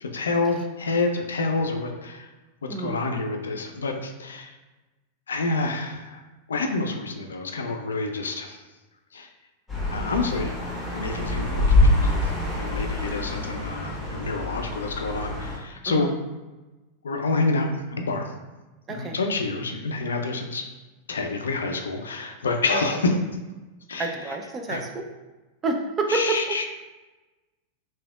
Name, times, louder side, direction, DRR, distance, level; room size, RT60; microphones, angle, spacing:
voice 1, 0.0-2.3 2.8-4.5 5.3-6.2 6.5-8.6 9.1-9.3 9.9-10.5 10.9-12.3 12.6-16.1 17.0-18.3 18.9-20.6 21.1-23.2 23.9-24.1 24.7-24.8 26.1-26.7, left 3 dB, 70° left, 4 dB, 0.3 m, -28 dB
voice 2, 2.7-3.0 15.9-16.1 18.9-19.2 22.7-22.8 24.0-25.0 25.6-26.2, right 3 dB, 20° right, 3 dB, 0.4 m, -29 dB
sound 1, 9.7-15.6, left 2 dB, ahead, 1.5 m, -25 dB
3.3 x 2.8 x 2.3 m, 1.1 s
figure-of-eight pair, 90°, 0 cm